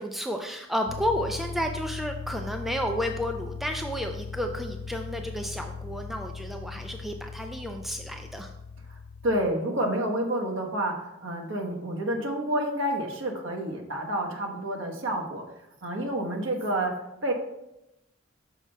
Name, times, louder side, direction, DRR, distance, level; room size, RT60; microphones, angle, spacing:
voice 1, 0.0-8.5, equal, ahead, 4 dB, 0.3 m, -31 dB
sound 1, 0.9-9.5, left 5 dB, 85° left, 0.3 m, -39 dB
voice 2, 9.2-15.4 15.8-17.3, right 1 dB, 65° right, 1 dB, 1.1 m, -29 dB
6.1 x 5.4 x 3.4 m, 0.90 s
head